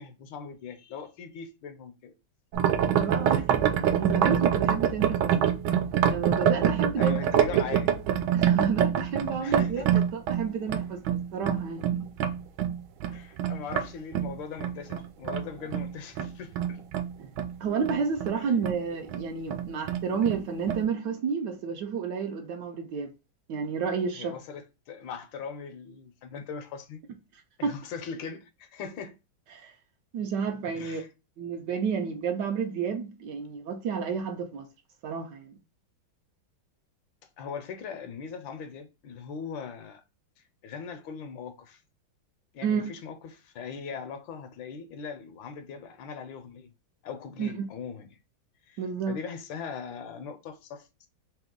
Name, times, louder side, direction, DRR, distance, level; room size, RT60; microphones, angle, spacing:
voice 1, 0.0-2.1 3.3-3.4 7.0-7.9 9.4-10.0 13.1-16.8 18.3-18.5 24.1-27.0 27.6-29.1 30.8-31.1 37.4-40.0 40.6-41.8 42.5-46.7 47.0-48.2 48.7-48.8 49.1-51.1, left 6 dB, 80° left, 1.3 m, -40 dB
sound 1, 2.5-13.9 14.1-17.5 17.8-18.4 18.6-18.8 19.1-19.2 19.5-20.4 20.7-20.8, right 9 dB, 85° right, 1.4 m, -26 dB
voice 2, 2.9-5.5 6.1-7.2 8.3-12.1 17.2-17.3 17.6-23.1 23.5-24.4 27.6-27.8 29.5-29.7 30.1-31.0 31.4-34.7 35.0-35.5 42.6-42.9 47.4-47.7 48.8-49.2, right 6 dB, 70° right, 1.1 m, -31 dB
3.5 x 2.9 x 3.6 m
omnidirectional pair, 2.2 m